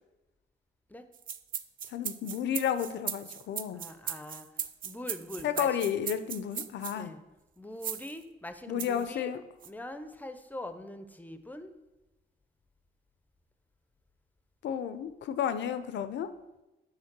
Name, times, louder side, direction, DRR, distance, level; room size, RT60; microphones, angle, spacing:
sound 1, 1.1-7.0 7.8-8.1 8.8-9.0 9.6-9.7, right 9 dB, 45° right, 0.4 m, -37 dB
voice 1, 1.9-3.8 5.4-7.1 8.7-9.4 14.6-16.3, left 9 dB, 65° left, 11 dB, 0.5 m, -32 dB
voice 2, 3.7-4.5 4.8-5.8 6.9-7.2 7.6-9.3 9.6-11.7, left 1 dB, 10° left, 9 dB, 0.5 m, -42 dB
6.5 x 3.5 x 6.0 m, 1.0 s
cardioid pair, 90°, 20 cm